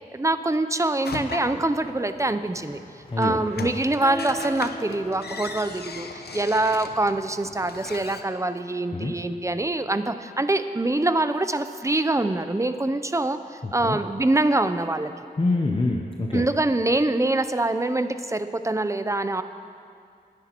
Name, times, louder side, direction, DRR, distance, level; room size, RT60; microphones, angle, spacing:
voice 1, 0.1-2.8 3.2-15.1 16.3-19.4, right 2 dB, 20° right, 10 dB, 0.5 m, -24 dB
sound 1, 1.0-8.2, left 4 dB, 80° left, 0.7 m, -39 dB
voice 2, 3.1-3.7 8.9-9.1 13.6-14.0 15.4-16.5, left 2 dB, 30° left, 1 dB, 0.7 m, -26 dB
sound 2, 4.0-7.2, equal, 60° left, 2.9 m, -39 dB
20.5 x 10.0 x 3.0 m, 2.3 s
wide cardioid pair, 75°, 17 cm